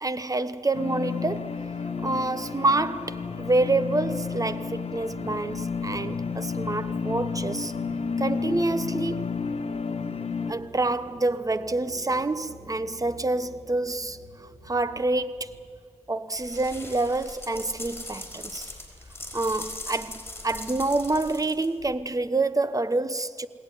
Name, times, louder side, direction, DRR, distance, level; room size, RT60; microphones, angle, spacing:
voice 1, 0.0-1.6 2.0-7.7 8.2-9.3 10.5-15.6 16.1-18.7 19.3-23.5, right 2 dB, 30° right, 1.0 m, -27 dB
sound 1, 0.7-10.5, left 5 dB, 65° left, 0.9 m, -31 dB
sound 2, 1.2-15.7, right 1 dB, 55° right, 5.8 m, -46 dB
sound 3, 16.4-21.9, left 1 dB, 20° left, 4.7 m, -40 dB
21.5 x 17.5 x 9.8 m
cardioid pair, 65°, 11 cm